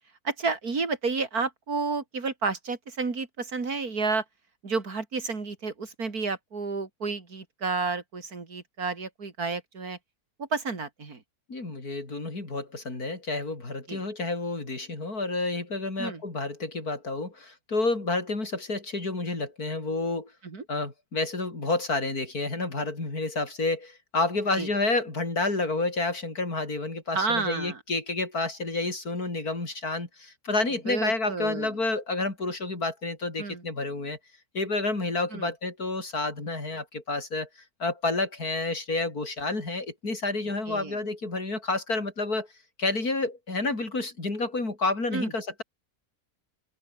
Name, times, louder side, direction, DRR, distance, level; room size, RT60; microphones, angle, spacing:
voice 1, 0.2-4.2 4.6-10.0 10.4-11.2 13.9-14.0 16.0-16.2 20.4-20.6 24.6-24.7 27.1-27.8 30.9-31.7 33.4-33.6 35.3-35.5 40.7-41.0 45.1-45.3, right 4 dB, 80° right, 3.5 m, -31 dB
voice 2, 11.5-20.3 20.7-34.2 34.5-37.5 37.8-42.5 42.8-45.6, left 3 dB, 80° left, 5.4 m, -29 dB
omnidirectional pair, 1.6 m